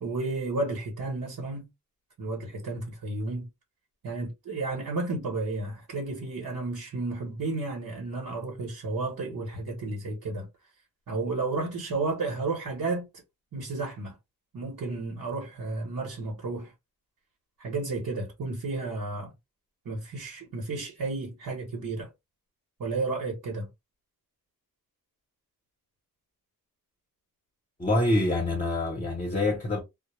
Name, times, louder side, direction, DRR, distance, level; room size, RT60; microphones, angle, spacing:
voice 1, 0.0-1.7 2.2-3.5 4.0-10.5 11.1-13.0 13.5-14.1 14.5-16.7 17.6-19.3 19.8-22.1 22.8-23.7, right 3 dB, 80° right, 1.0 m, -32 dB
voice 2, 27.8-29.8, left 2 dB, 20° left, 0.7 m, -26 dB
2.1 x 2.0 x 3.0 m
wide cardioid pair, 115°, 33 cm